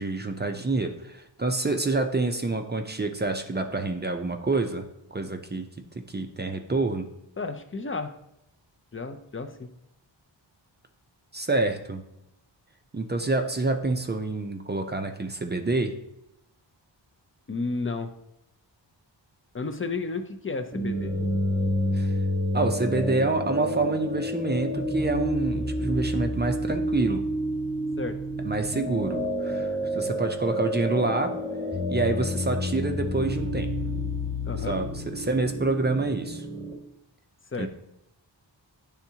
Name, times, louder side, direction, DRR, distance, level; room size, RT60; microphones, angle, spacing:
voice 1, 0.0-4.8 5.1-5.7 6.1-7.1 11.3-12.0 12.9-15.9 21.9-22.2 22.5-27.3 28.4-31.3 31.9-33.7 34.7-36.5 37.6-37.7, right 3 dB, 25° right, 5 dB, 0.5 m, -27 dB
voice 2, 7.4-8.1 8.9-9.7 17.5-18.1 19.5-21.1 28.0-28.2 34.4-34.8 37.5-37.7, left 3 dB, 30° left, 6 dB, 0.5 m, -32 dB
sound 1, 20.7-36.7, equal, 5° left, 1.2 m, -29 dB
10.5 x 3.5 x 2.8 m, 0.83 s
wide cardioid pair, 125°, 45 cm